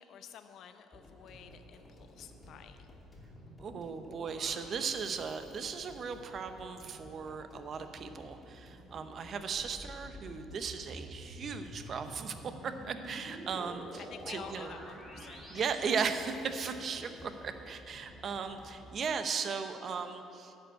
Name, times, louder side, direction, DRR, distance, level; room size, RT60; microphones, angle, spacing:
voice 1, 0.0-3.0 14.0-16.0, left 8 dB, 65° left, 8 dB, 0.7 m, -51 dB
sound 1, 0.9-19.0, equal, 15° left, 2.5 m, -54 dB
sound 2, 2.8-6.0 9.3-17.0, equal, 10° right, 2.2 m, -50 dB
voice 2, 3.6-14.0 14.3-14.7 15.5-20.5, right 6 dB, 45° right, 8 dB, 0.7 m, -37 dB
11.0 x 5.4 x 8.0 m, 2.7 s
cardioid pair, 115°, 0 cm